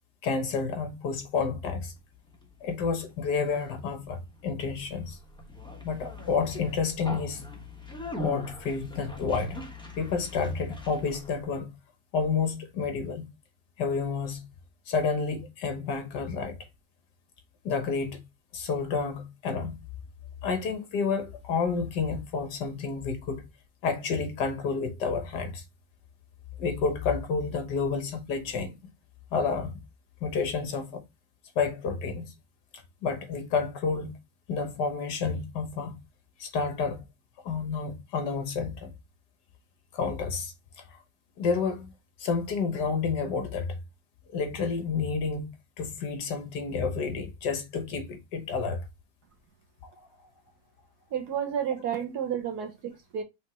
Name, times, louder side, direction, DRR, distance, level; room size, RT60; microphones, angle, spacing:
voice 1, 0.2-1.9 2.6-5.2 5.8-7.4 8.2-9.6 10.0-11.7 12.1-13.3 13.8-14.5 14.9-16.6 17.7-18.2 18.5-19.8 20.4-23.4 23.8-25.6 26.6-28.8 29.3-29.8 30.2-31.0 31.6-32.3 33.0-34.1 34.5-36.0 36.4-37.0 37.5-38.9 39.9-40.5 41.4-41.9 42.2-43.8 44.3-48.8, left 5 dB, 65° left, 1.7 m, -30 dB
Conversation, 2.0-11.4, left 1 dB, 5° left, 0.6 m, -42 dB
voice 2, 51.1-53.2, right 8 dB, 65° right, 1.3 m, -31 dB
5.3 x 3.3 x 2.9 m
omnidirectional pair, 2.0 m